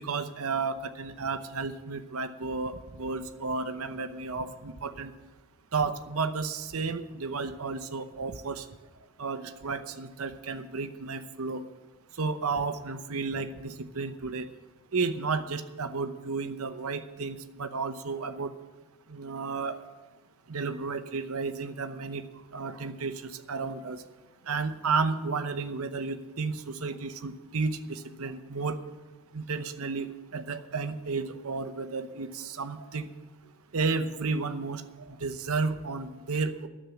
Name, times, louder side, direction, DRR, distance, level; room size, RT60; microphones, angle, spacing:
voice 1, 0.0-5.1 5.7-8.7 9.2-11.6 12.2-14.5 14.9-18.5 19.1-19.8 20.5-22.2 22.5-24.0 24.5-28.8 29.3-33.1 33.7-36.7, right 4 dB, 80° right, 10 dB, 0.8 m, -32 dB
10.0 x 7.4 x 9.0 m, 1.2 s
head